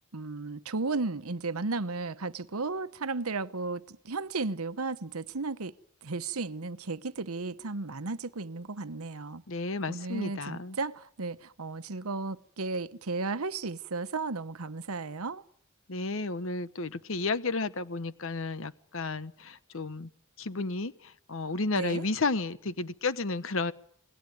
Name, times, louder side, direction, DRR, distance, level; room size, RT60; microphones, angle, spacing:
voice 1, 0.1-5.7 6.0-9.4 9.9-15.4 21.8-22.1, right 3 dB, 85° right, 1.0 m, -34 dB
voice 2, 9.5-10.8 15.9-20.1 20.4-23.7, left 3 dB, 60° left, 1.1 m, -32 dB
28.0 x 20.5 x 9.3 m
head